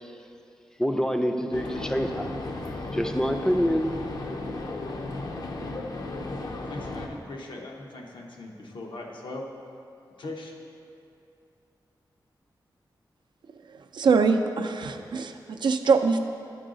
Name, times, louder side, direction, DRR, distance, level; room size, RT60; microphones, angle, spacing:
voice 1, 0.8-2.3 2.9-3.9, equal, 5° left, 5 dB, 0.4 m, -26 dB
sound 1, 1.5-7.1, left 2 dB, 55° left, 0.6 m, -35 dB
voice 2, 6.7-9.4 10.2-10.5, left 2 dB, 80° left, 0 dB, 0.9 m, -39 dB
voice 3, 13.9-16.2, right 4 dB, 70° right, 6 dB, 0.4 m, -23 dB
10.0 x 4.7 x 3.8 m, 2.5 s
wide cardioid pair, 100°, 8 cm